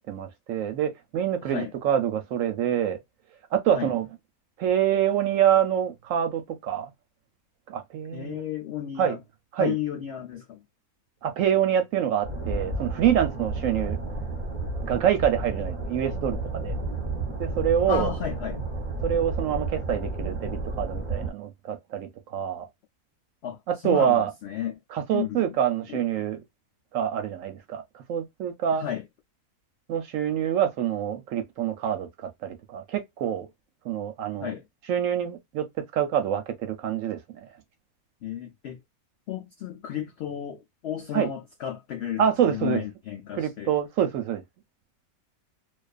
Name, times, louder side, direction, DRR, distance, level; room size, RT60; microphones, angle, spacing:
voice 1, 0.1-3.0 3.5-4.1 4.6-6.9 7.7-8.4 9.0-9.2 9.5-9.7 11.2-14.0 14.8-16.7 17.4-18.1 19.0-22.7 23.7-24.3 24.9-26.4 26.9-28.8 29.9-32.1 32.4-33.5 33.8-34.5 34.9-35.6 35.9-37.2 41.1-41.3 42.2-42.8 43.3-44.4, right 9 dB, 70° right, 0.9 m, -26 dB
voice 2, 8.1-9.2 9.6-10.6 17.9-18.6 23.4-24.8 25.1-25.5 25.9-26.0 28.7-29.0 34.4-34.6 38.2-38.8 39.3-43.7, left 10 dB, 75° left, 0.6 m, -33 dB
sound 1, 12.2-21.3, right 2 dB, 35° right, 0.8 m, -31 dB
2.4 x 2.4 x 2.3 m
omnidirectional pair, 1.6 m